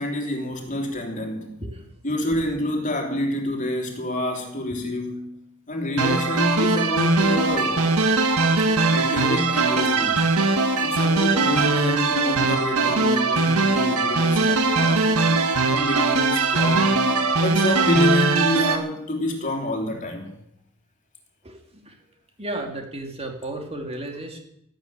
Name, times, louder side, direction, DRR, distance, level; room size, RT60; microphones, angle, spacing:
voice 1, 0.0-1.5 2.0-5.3 5.7-7.9 8.9-10.2 10.8-15.1 15.7-20.3, left 1 dB, 35° left, 3.3 m, -27 dB
sound 1, 6.0-18.8, right 3 dB, 75° right, 1.9 m, -21 dB
voice 2, 22.4-24.4, right 1 dB, 25° right, 2.5 m, -33 dB
13.0 x 12.0 x 8.9 m
head